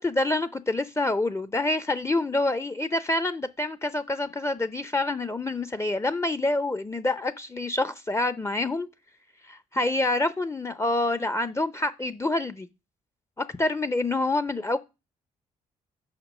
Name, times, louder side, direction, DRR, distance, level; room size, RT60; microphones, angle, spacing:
voice 1, 0.0-8.9 9.5-12.7 13.4-14.8, left 2 dB, 15° left, 0.7 m, -27 dB
5.9 x 5.1 x 6.1 m
supercardioid pair, 55°, 16 cm